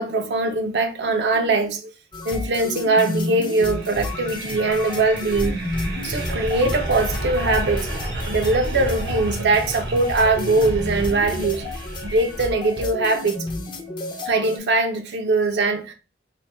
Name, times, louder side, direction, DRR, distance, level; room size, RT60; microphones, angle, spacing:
voice 1, 0.0-1.9 2.2-5.6 6.0-7.9 8.3-11.7 12.0-13.4 14.2-15.9, right 3 dB, 75° right, 0.5 m, -21 dB
sound 1, 2.1-14.6, left 2 dB, 25° left, 0.5 m, -32 dB
sound 2, 3.5-12.7, right 1 dB, 90° right, 0.9 m, -30 dB
3.1 x 2.1 x 4.1 m
head